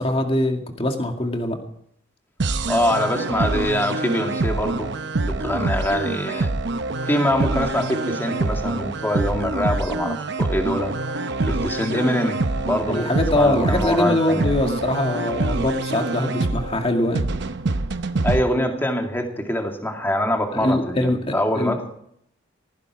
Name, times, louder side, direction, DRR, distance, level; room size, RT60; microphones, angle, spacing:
voice 1, 0.0-1.6 12.9-17.3 20.5-21.8, left 1 dB, 30° left, 4 dB, 2.2 m, -23 dB
sound 1, 2.4-18.4, right 2 dB, 60° right, 0.8 m, -25 dB
voice 2, 2.7-6.5 7.0-10.9 11.4-14.5 18.2-21.9, left 1 dB, 10° left, 3 dB, 2.2 m, -24 dB
18.0 x 15.5 x 4.8 m, 0.71 s
head